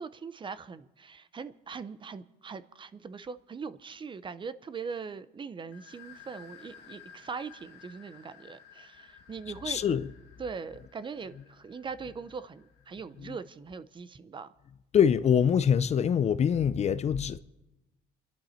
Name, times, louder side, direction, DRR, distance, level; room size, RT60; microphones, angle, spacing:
voice 1, 0.0-9.8 10.4-14.5, right 5 dB, 30° right, 0.6 m, -41 dB
sound 1, 5.7-13.2, left 7 dB, 80° left, 2.0 m, -55 dB
voice 2, 9.6-10.1 13.2-13.3 14.9-17.4, left 8 dB, 40° left, 0.6 m, -24 dB
28.5 x 11.5 x 4.4 m
cardioid pair, 110°, 17 cm